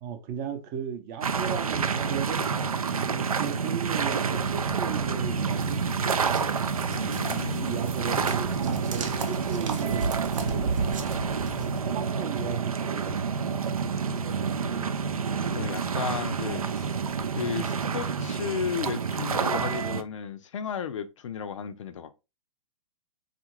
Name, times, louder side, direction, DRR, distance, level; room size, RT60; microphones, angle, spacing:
voice 1, 0.0-2.5 3.0-5.8 7.4-11.0 11.6-13.2 14.1-14.9 16.0-16.7, right 8 dB, 35° right, 0.6 m, -37 dB
sound 1, 1.2-20.0, right 6 dB, 90° right, 0.4 m, -28 dB
sound 2, 5.6-11.8, right 4 dB, 65° right, 0.8 m, -35 dB
voice 2, 6.9-7.8 8.5-8.9 15.5-17.0 17.3-22.1, left 7 dB, 60° left, 0.4 m, -34 dB
3.6 x 2.5 x 2.9 m
figure-of-eight pair, 115°, 18 cm